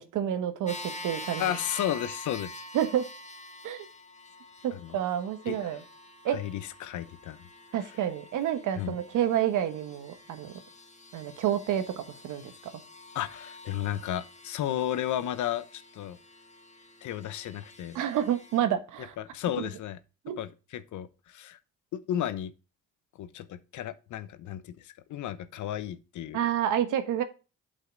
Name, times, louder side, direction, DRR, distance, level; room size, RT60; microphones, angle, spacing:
voice 1, 0.0-1.4 2.7-3.0 3.6-3.8 4.6-5.8 6.2-6.4 7.7-10.5 11.1-12.5 17.9-19.1 19.6-19.7 20.2-20.4 26.3-27.2, right 10 dB, 85° right, 1.2 m, -29 dB
sound 1, 0.7-18.6, left 1 dB, 25° left, 1.5 m, -46 dB
voice 2, 1.4-2.5 4.7-5.0 5.5-5.7 6.3-7.5 7.8-7.9 8.7-8.9 13.1-16.2 17.0-18.0 19.2-20.0 20.4-21.6 21.9-22.5 23.2-26.4, left 11 dB, 75° left, 0.9 m, -33 dB
8.3 x 5.6 x 3.9 m
cardioid pair, 90°, 30 cm